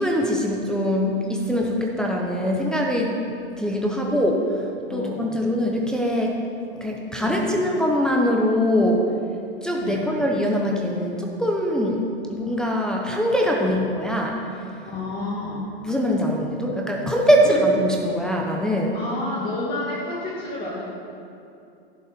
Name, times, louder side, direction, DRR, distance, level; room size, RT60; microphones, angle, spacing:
voice 1, 0.0-3.1 3.6-4.4 4.9-6.4 6.8-9.1 9.6-14.4 15.8-18.9, equal, ahead, -2 dB, 0.9 m, -22 dB
voice 2, 4.9-5.2 7.2-7.5 9.8-10.1 13.6-13.8 14.8-15.7 17.2-17.6 18.9-20.8, left 2 dB, 30° left, -7 dB, 2.1 m, -30 dB
11.0 x 5.4 x 6.8 m, 2.6 s
hypercardioid pair, 130°, 31 cm